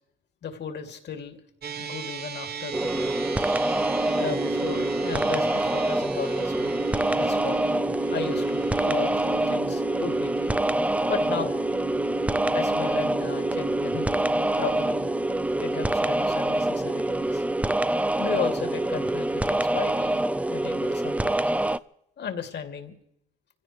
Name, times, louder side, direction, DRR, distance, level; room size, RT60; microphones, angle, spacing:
voice 1, 0.4-1.4 1.8-3.1 4.2-6.8 7.2-7.6 8.1-10.5 11.1-11.5 12.5-14.2 14.6-15.1 15.6-17.4 18.2-20.2 20.5-21.4 22.2-23.0, left 6 dB, 60° left, 5 dB, 2.7 m, -35 dB
sound 1, 1.6-20.2, right 4 dB, 55° right, 1.3 m, -36 dB
sound 2, 2.7-21.8, right 1 dB, 5° right, 0.5 m, -26 dB
25.5 x 16.5 x 3.3 m, 0.77 s
cardioid pair, 90°, 20 cm